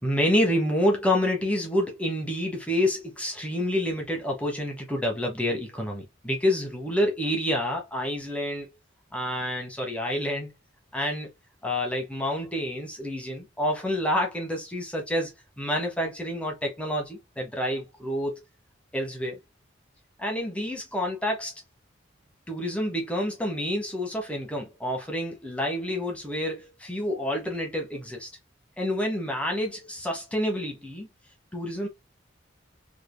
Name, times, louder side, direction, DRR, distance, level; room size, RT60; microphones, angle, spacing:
voice 1, 0.0-8.7 9.1-10.5 10.9-11.3 11.6-15.3 15.6-18.4 18.9-19.4 20.2-21.5 22.5-28.3 28.8-31.1 31.5-31.9, left 1 dB, 5° left, 1.2 m, -28 dB
3.8 x 3.4 x 2.2 m
head